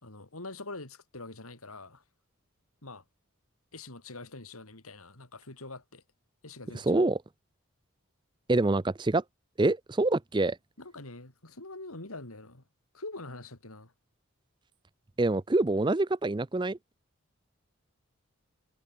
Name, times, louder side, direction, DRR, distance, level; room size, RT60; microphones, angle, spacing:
voice 1, 0.0-2.0 2.8-3.0 3.7-6.0 6.4-7.0 10.8-12.6 12.9-13.9, left 2 dB, 90° left, 4.2 m, -44 dB
voice 2, 6.9-7.2 8.5-9.2 9.6-10.6 15.2-16.8, right 2 dB, 20° right, 0.5 m, -26 dB
head